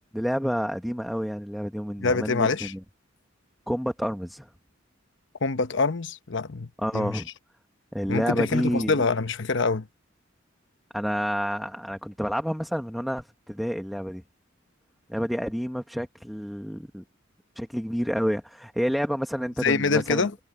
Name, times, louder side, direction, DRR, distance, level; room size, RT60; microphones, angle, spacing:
voice 1, 0.1-2.8 3.7-4.5 6.8-7.3 7.9-9.0 10.9-14.2 15.1-17.0 17.5-20.3, equal, ahead, 1.2 m, -29 dB
voice 2, 2.0-2.7 5.4-7.2 8.1-9.9 19.6-20.3, left 4 dB, 65° left, 1.0 m, -25 dB
head